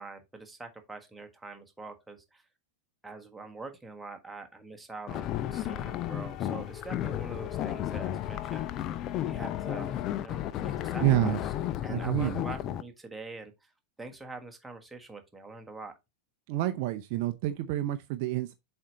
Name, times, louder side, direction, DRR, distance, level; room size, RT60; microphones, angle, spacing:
voice 1, 0.0-2.5 3.0-8.9 9.3-11.5 11.8-13.7 14.0-15.9, right 3 dB, 5° right, 1.4 m, -44 dB
sound 1, 5.1-12.8, left 12 dB, 35° left, 0.5 m, -33 dB
voice 2, 11.0-11.4 11.9-12.4 16.5-18.5, right 15 dB, 45° right, 0.6 m, -28 dB
7.3 x 4.5 x 4.0 m
figure-of-eight pair, 90°, 0 cm